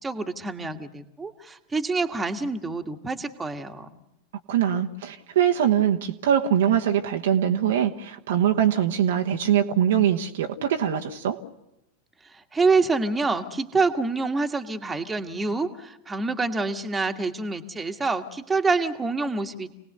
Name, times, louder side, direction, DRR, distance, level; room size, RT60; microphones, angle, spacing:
voice 1, 0.0-4.0 12.5-19.7, right 3 dB, 10° right, 5 dB, 1.6 m, -26 dB
voice 2, 4.5-11.4, right 9 dB, 60° right, 3 dB, 1.2 m, -22 dB
28.5 x 19.0 x 6.8 m, 0.89 s
figure-of-eight pair, 90°, 0 cm